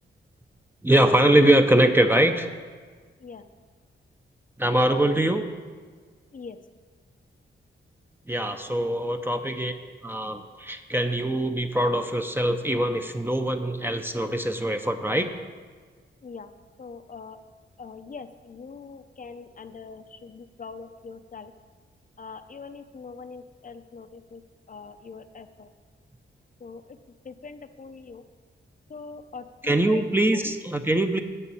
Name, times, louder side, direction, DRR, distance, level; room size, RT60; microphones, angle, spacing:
voice 1, 0.8-2.5 4.6-5.4 8.3-9.7 10.0-15.3 29.6-31.2, right 1 dB, 10° right, 6 dB, 0.6 m, -22 dB
voice 2, 16.2-16.5 16.8-17.4 17.8-21.5 22.2-24.4 24.7-25.7 26.6-27.0 27.2-28.2 28.9-30.0 30.3-30.5, left 5 dB, 40° left, 9 dB, 0.6 m, -42 dB
8.9 x 6.8 x 8.5 m, 1.5 s
wide cardioid pair, 120°, 21 cm